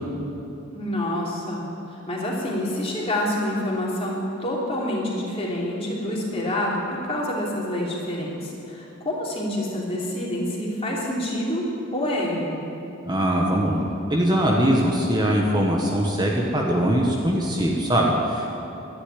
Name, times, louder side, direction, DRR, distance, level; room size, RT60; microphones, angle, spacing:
voice 1, 0.7-1.6 2.1-11.7 11.9-12.6, left 1 dB, 30° left, -4 dB, 3.1 m, -27 dB
voice 2, 13.0-18.5, equal, 20° right, -2 dB, 1.3 m, -21 dB
12.0 x 10.0 x 9.9 m, 3.0 s
head